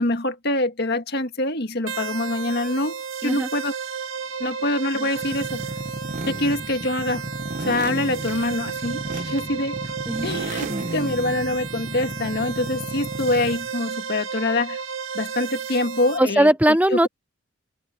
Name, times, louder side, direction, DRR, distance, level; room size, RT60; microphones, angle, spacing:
voice 1, 0.0-3.8 4.4-5.6 6.3-7.3 7.6-9.9 10.2-14.8 15.1-16.5 16.9-17.1, left 2 dB, 55° left, 1.9 m, -25 dB
sound 1, 1.9-16.2, right 6 dB, 90° right, 2.5 m, -33 dB
sound 2, 5.2-13.7, right 2 dB, 40° right, 1.0 m, -33 dB
voice 2, 16.2-17.1, right 1 dB, 5° right, 0.8 m, -20 dB
head